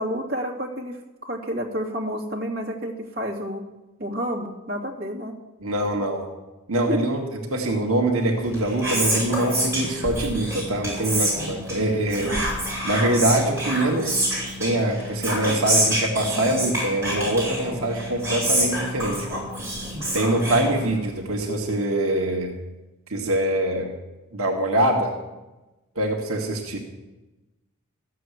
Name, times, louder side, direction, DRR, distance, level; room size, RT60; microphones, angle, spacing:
voice 1, 0.0-3.6 4.0-5.3 6.9-7.0, equal, 45° right, -2 dB, 2.7 m, -29 dB
voice 2, 5.6-6.2 6.7-7.3 7.5-12.3 12.8-19.4 20.1-22.5 23.1-23.9 24.3-25.1 26.0-26.8, right 1 dB, 80° right, 1 dB, 1.9 m, -24 dB
Whispering, 8.4-21.2, right 1 dB, 15° right, 6.9 m, -27 dB
14.0 x 7.6 x 9.5 m, 1.1 s
head